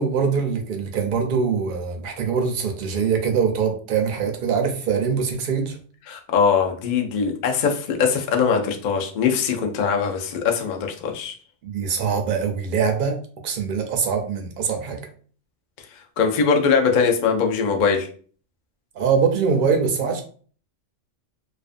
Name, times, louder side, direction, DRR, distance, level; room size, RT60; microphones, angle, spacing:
voice 1, 0.0-5.8 11.6-13.2 13.4-15.0 19.0-20.2, right 6 dB, 60° right, 4 dB, 0.5 m, -23 dB
voice 2, 6.1-11.3 16.2-18.1, left 6 dB, 65° left, 3 dB, 0.4 m, -21 dB
2.4 x 2.2 x 2.4 m, 0.43 s
omnidirectional pair, 1.3 m